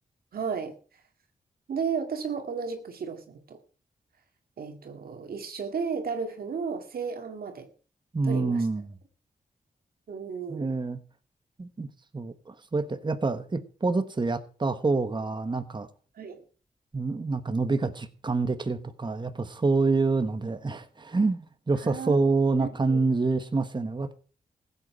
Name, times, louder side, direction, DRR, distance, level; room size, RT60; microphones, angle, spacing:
voice 1, 0.3-0.7 1.7-3.6 4.6-7.7 8.2-8.7 10.1-10.8 16.1-16.4 21.8-22.3 22.6-23.1, right 6 dB, 85° right, 2.2 m, -34 dB
voice 2, 8.1-8.9 10.5-11.0 11.6-11.9 12.1-15.9 16.9-24.1, right 3 dB, 30° right, 1.2 m, -27 dB
15.5 x 8.3 x 6.3 m
cardioid pair, 75°, 15 cm